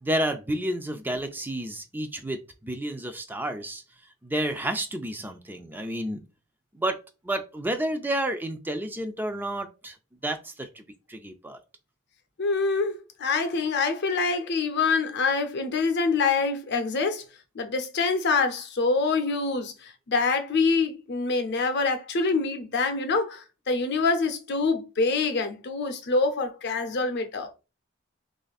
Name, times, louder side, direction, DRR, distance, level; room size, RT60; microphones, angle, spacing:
voice 1, 0.0-3.8 4.2-6.2 6.7-10.0 10.2-10.8 11.1-11.6, right 1 dB, 10° right, 0.3 m, -30 dB
voice 2, 12.4-17.2 17.5-27.5, left 4 dB, 55° left, 0.7 m, -25 dB
3.2 x 2.5 x 4.0 m
head